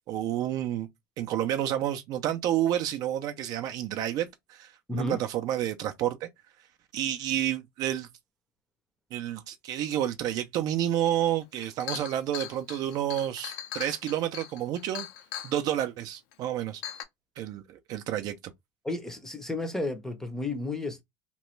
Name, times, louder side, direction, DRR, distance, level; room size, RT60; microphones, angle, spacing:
voice 1, 0.1-0.9 1.2-6.3 6.9-8.1 9.1-15.1 15.4-16.8 17.4-18.4, right 11 dB, 45° right, 0.4 m, -30 dB
voice 2, 4.9-5.2 18.8-21.0, left 2 dB, 5° left, 0.6 m, -32 dB
Chink clink, 11.1-11.2 11.6-15.5 16.3-16.4 16.8-17.0, left 11 dB, 70° left, 0.5 m, -39 dB
2.9 x 2.2 x 3.1 m
cardioid pair, 140°, 9 cm